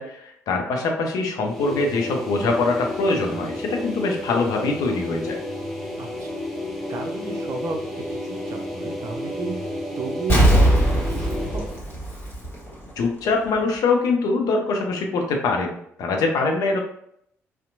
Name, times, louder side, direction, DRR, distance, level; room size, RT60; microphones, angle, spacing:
voice 1, 0.0-5.4 13.0-16.8, left 3 dB, 60° left, 2 dB, 0.5 m, -23 dB
sound 1, 1.4-11.8, left 1 dB, ahead, 0.7 m, -31 dB
voice 2, 6.0-6.4 6.9-11.7, right 4 dB, 50° right, 3 dB, 0.5 m, -33 dB
Explosion, 10.3-12.9 13.2-13.3, right 1 dB, 30° left, 1.2 m, -19 dB
2.8 x 2.1 x 2.5 m, 0.71 s
hypercardioid pair, 45°, 7 cm